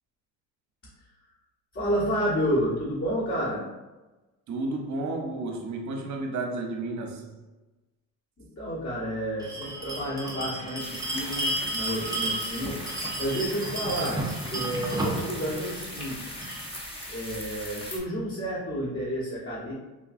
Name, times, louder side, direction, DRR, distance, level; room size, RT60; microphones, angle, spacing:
voice 1, 1.7-3.7 8.4-14.3 14.5-16.3 17.1-19.7, equal, 35° left, -9 dB, 1.3 m, -30 dB
voice 2, 4.5-7.3, right 2 dB, 45° right, 2 dB, 0.8 m, -32 dB
Bell, 9.4-16.6, right 2 dB, 10° right, 0.6 m, -33 dB
sound 1, 10.8-18.0, equal, 15° left, 0.8 m, -39 dB
3.7 x 2.3 x 2.5 m, 1.1 s
supercardioid pair, 85°, 40 cm